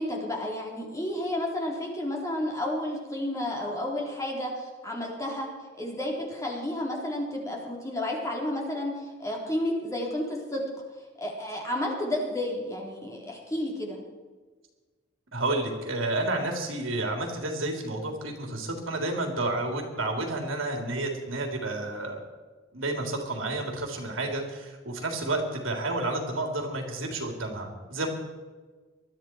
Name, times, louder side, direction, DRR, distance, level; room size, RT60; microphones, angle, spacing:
voice 1, 0.0-5.5 5.7-10.6 11.2-14.0, left 1 dB, 15° left, -1 dB, 3.9 m, -31 dB
voice 2, 15.3-22.2 22.7-28.1, right 2 dB, 85° right, 2 dB, 3.5 m, -30 dB
21.0 x 13.0 x 4.6 m, 1.3 s
head